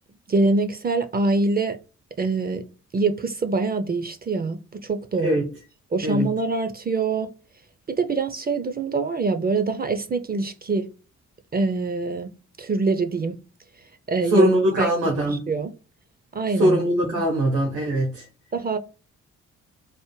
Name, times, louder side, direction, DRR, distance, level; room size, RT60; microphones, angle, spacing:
voice 1, 0.3-1.8 2.2-2.6 2.9-5.4 5.9-7.3 7.9-10.9 11.5-12.3 12.6-13.4 14.1-14.5 14.8-15.7 16.3-17.2 18.5-18.8, right 3 dB, 25° right, 0.5 m, -24 dB
voice 2, 14.3-15.4 16.6-18.3, equal, 80° right, 1.2 m, -21 dB
3.4 x 2.1 x 3.1 m
hypercardioid pair, 40°, 35 cm